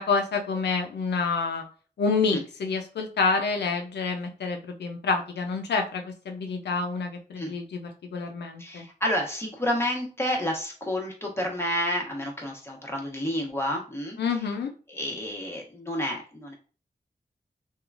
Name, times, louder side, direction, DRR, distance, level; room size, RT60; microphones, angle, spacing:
voice 1, 0.0-1.6 2.0-8.8 14.2-14.7, left 4 dB, 85° left, 4 dB, 0.4 m, -28 dB
voice 2, 8.6-14.2 14.9-16.5, equal, 15° left, -1 dB, 1.0 m, -30 dB
2.9 x 2.3 x 2.4 m, 0.38 s
cardioid pair, 45°, 17 cm